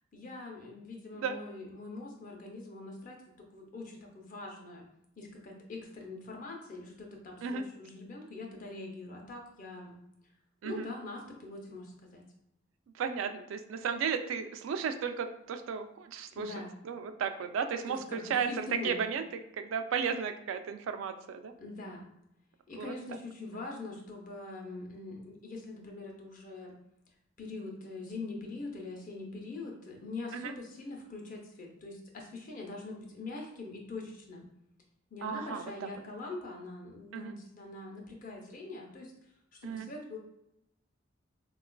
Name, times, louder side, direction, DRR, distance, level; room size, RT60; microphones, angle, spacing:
voice 1, 0.1-4.9 5.2-10.0 10.6-12.3 16.3-16.8 17.9-19.0 21.6-22.1 22.7-26.8 27.4-34.5 35.1-39.1 39.6-40.2, left 3 dB, 45° left, 0 dB, 0.6 m, -43 dB
voice 2, 12.9-16.5 16.8-19.3 19.6-21.5 22.8-22.9 30.3-30.5 35.2-35.9 37.1-37.3 39.6-39.9, right 6 dB, 90° right, 9 dB, 0.3 m, -34 dB
3.7 x 2.3 x 2.2 m, 0.81 s
head